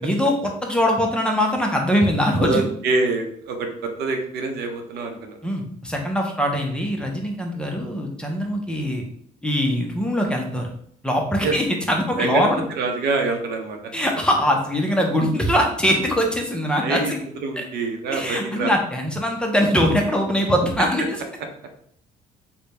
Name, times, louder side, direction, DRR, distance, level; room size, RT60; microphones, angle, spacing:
voice 1, 0.0-2.6 5.4-9.0 9.4-10.7 11.0-12.6 13.9-17.2 17.6-17.7 18.1-21.2, equal, 5° left, 1 dB, 0.7 m, -22 dB
voice 2, 2.4-3.7 4.0-5.4 11.4-11.5 12.2-12.4 12.8-13.8 16.8-17.1 17.4-18.7, right 3 dB, 70° right, 4 dB, 0.7 m, -25 dB
3.3 x 2.2 x 4.0 m, 0.64 s
cardioid pair, 110°, 17 cm